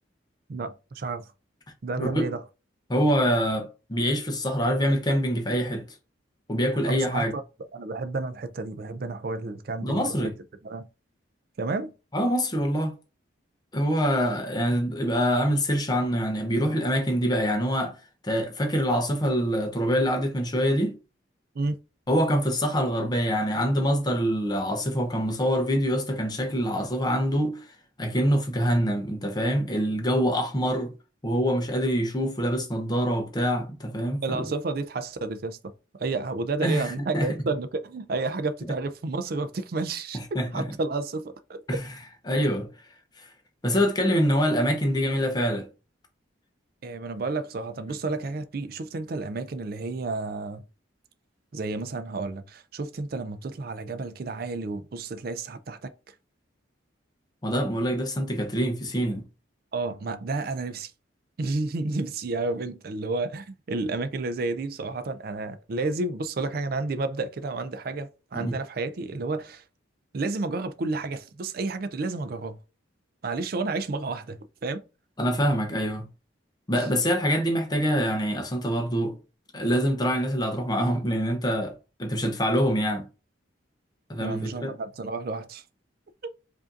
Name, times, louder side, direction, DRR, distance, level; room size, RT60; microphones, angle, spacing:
voice 1, 0.5-1.3 1.8-2.4 6.8-7.4 7.7-10.3 10.6-10.9 11.6-11.9 21.6-21.8 34.2-35.6 35.9-41.6 46.8-50.6 51.5-55.9 59.7-60.9 61.4-69.6 70.1-72.6 73.2-74.8 84.2-85.6 86.2-86.3, right 3 dB, 50° right, 0.4 m, -31 dB
voice 2, 2.0-2.3 2.9-6.0 6.5-7.3 9.8-10.3 12.1-12.9 13.7-18.0 18.2-21.0 22.1-27.7 28.0-30.9 31.2-34.5 36.6-37.3 40.1-40.7 41.7-41.8 42.3-42.7 43.2-43.3 43.6-45.7 57.4-59.2 68.3-68.5 75.2-76.1 76.7-79.2 79.5-83.1 84.1-84.8, equal, 20° left, 0.7 m, -25 dB
4.9 x 2.6 x 2.5 m
head